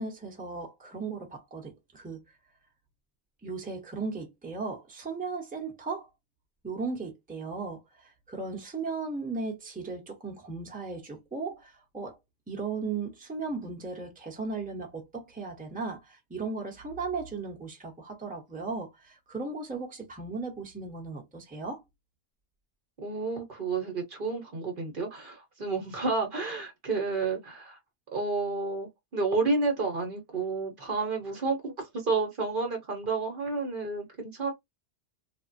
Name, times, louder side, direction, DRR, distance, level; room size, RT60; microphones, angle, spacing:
voice 1, 0.0-2.2 3.4-6.1 6.6-12.2 12.5-21.8, right 4 dB, 10° right, 0.8 m, -36 dB
voice 2, 23.0-27.8 28.1-34.5, right 3 dB, 55° right, 1.0 m, -30 dB
3.4 x 2.1 x 2.5 m
omnidirectional pair, 1.1 m